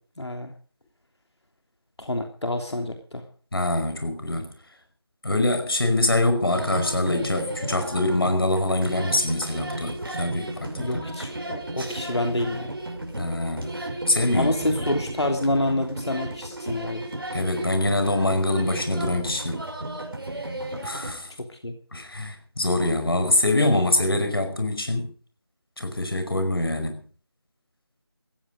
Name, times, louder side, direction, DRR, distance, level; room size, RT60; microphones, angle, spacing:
voice 1, 0.2-0.5 2.0-3.2 10.7-12.7 14.3-17.0 21.5-21.7, left 1 dB, 85° left, 4 dB, 3.2 m, -27 dB
voice 2, 3.5-4.5 5.2-11.0 13.2-13.8 14.1-14.5 17.3-19.6 20.8-21.3 21.9-25.1 25.8-27.0, left 2 dB, 60° left, 7 dB, 5.4 m, -24 dB
sound 1, 6.5-21.1, right 1 dB, 55° right, 5.5 m, -34 dB
18.5 x 15.0 x 5.1 m, 0.41 s
figure-of-eight pair, 175°, 14 cm